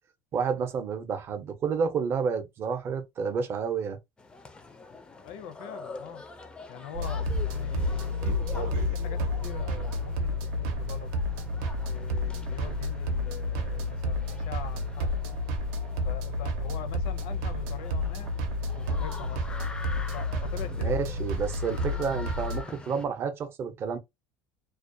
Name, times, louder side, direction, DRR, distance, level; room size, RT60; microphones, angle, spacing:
voice 1, 0.3-4.0 20.8-24.0, right 6 dB, 35° right, 0.6 m, -30 dB
sound 1, 4.2-23.1, left 3 dB, 10° left, 0.4 m, -46 dB
voice 2, 5.2-6.2 6.7-11.1 11.8-15.2 16.0-18.3 18.7-19.6 20.1-21.0, left 9 dB, 70° left, 0.5 m, -43 dB
sound 2, 6.9-22.6, left 1 dB, 75° right, 0.7 m, -30 dB
2.3 x 2.2 x 2.6 m
cardioid pair, 140°, 7 cm